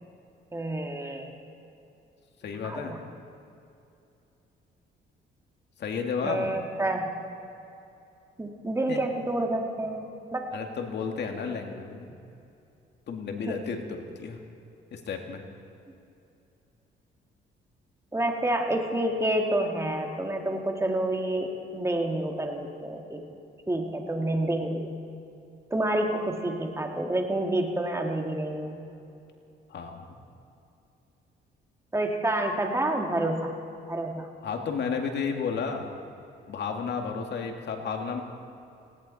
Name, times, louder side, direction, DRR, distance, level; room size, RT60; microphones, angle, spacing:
voice 1, 0.5-1.3 2.6-3.0 6.2-7.1 8.4-10.5 13.5-13.6 18.1-23.2 23.7-24.9 25.7-28.8 31.9-33.5 33.9-34.3, right 1 dB, 15° right, 1 dB, 2.4 m, -28 dB
voice 2, 2.4-2.9 5.8-6.6 8.9-9.0 10.5-12.1 13.1-14.4 14.9-15.4 29.7-30.0 34.4-35.9 36.5-38.2, left 5 dB, 60° left, 3 dB, 2.1 m, -32 dB
19.0 x 17.5 x 4.3 m, 2.7 s
cardioid pair, 90°, 20 cm